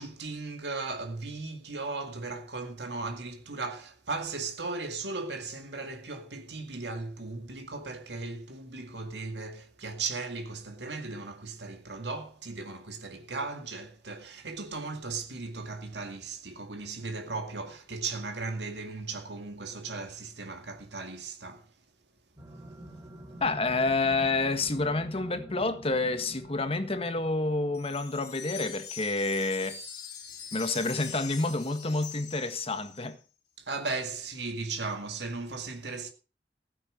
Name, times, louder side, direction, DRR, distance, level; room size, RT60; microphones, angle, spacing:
voice 1, 0.0-21.7 33.6-36.1, right 3 dB, 70° right, 2.2 m, -37 dB
sound 1, 22.4-28.0, equal, 20° right, 3.4 m, -46 dB
voice 2, 23.4-29.8 30.5-33.2, left 3 dB, 35° left, 1.5 m, -29 dB
Wind chime, 27.7-33.1, left 7 dB, 65° left, 4.6 m, -43 dB
16.0 x 8.7 x 5.2 m
head